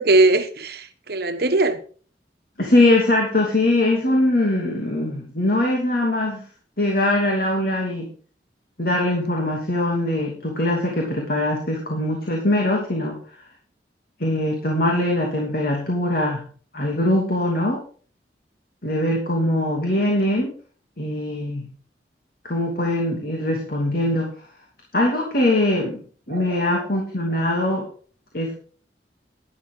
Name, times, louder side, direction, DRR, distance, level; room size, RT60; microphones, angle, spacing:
voice 1, 0.0-1.8 26.3-26.6, right 2 dB, 60° right, 1.2 m, -20 dB
voice 2, 2.6-6.4 6.8-8.1 8.8-13.2 14.2-16.4 16.7-17.8 18.8-20.5 21.0-21.7 22.4-24.3 24.9-26.0 26.3-27.9 28.3-28.5, left 1 dB, 55° left, 2.9 m, -22 dB
12.0 x 11.5 x 3.9 m
head